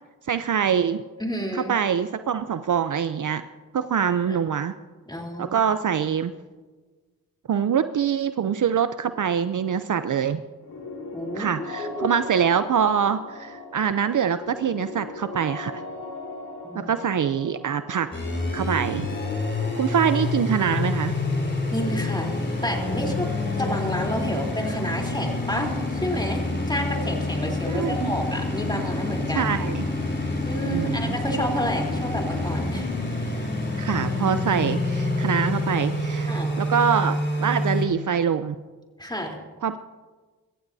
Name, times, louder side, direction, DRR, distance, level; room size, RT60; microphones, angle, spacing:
voice 1, 0.3-1.0 1.5-3.4 3.7-4.7 5.4-6.3 7.5-10.4 11.3-15.8 16.7-18.1 18.5-19.1 19.8-21.1 27.7-28.1 29.3-29.8 30.7-31.3 33.8-38.5 39.6-39.8, right 7 dB, 50° right, 11 dB, 0.6 m, -24 dB
voice 2, 1.2-1.7 4.3-4.4 5.1-5.6 11.1-12.1 16.6-16.9 21.7-22.3 22.6-23.3 23.6-25.7 26.0-29.5 30.4-32.9 36.3-36.5 39.0-39.4, equal, 10° left, 1 dB, 3.5 m, -30 dB
sound 1, 10.6-28.3, left 3 dB, 65° left, 3.5 m, -39 dB
sound 2, 18.1-37.9, left 2 dB, 30° left, 3.6 m, -27 dB
25.0 x 14.5 x 2.7 m, 1.3 s
cardioid pair, 60°, 39 cm